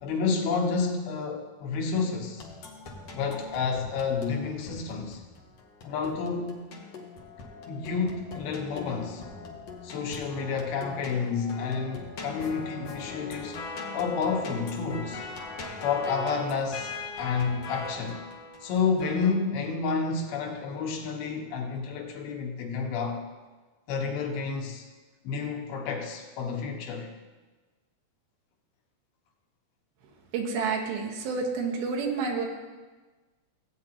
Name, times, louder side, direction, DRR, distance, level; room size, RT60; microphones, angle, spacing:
voice 1, 0.0-2.5 3.1-5.2 5.8-6.7 7.7-9.2 9.8-13.6 13.9-15.2 15.8-18.2 18.6-23.2 23.9-24.8 25.2-27.1, left 5 dB, 90° left, 1 dB, 3.1 m, -30 dB
sound 1, 2.4-19.3, left 4 dB, 65° left, 1.6 m, -41 dB
voice 2, 30.3-32.5, right 5 dB, 80° right, 0 dB, 3.1 m, -29 dB
16.0 x 8.7 x 2.9 m, 1.3 s
omnidirectional pair, 4.3 m